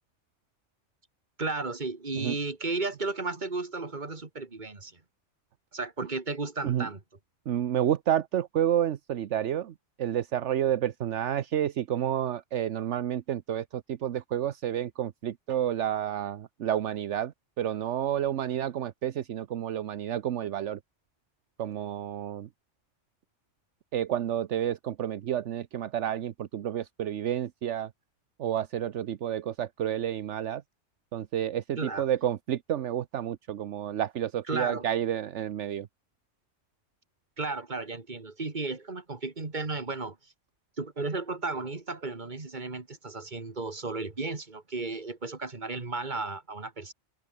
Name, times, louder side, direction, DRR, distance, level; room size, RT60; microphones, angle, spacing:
voice 1, 1.4-5.0 5.7-7.0 31.8-32.1 34.5-34.8 37.4-40.2 40.8-46.9, right 3 dB, 40° right, 2.4 m, -34 dB
voice 2, 7.5-20.8 21.6-22.5 23.9-27.9 28.4-30.6 31.1-35.9, right 10 dB, 75° right, 1.1 m, -30 dB
omnidirectional pair, 1.2 m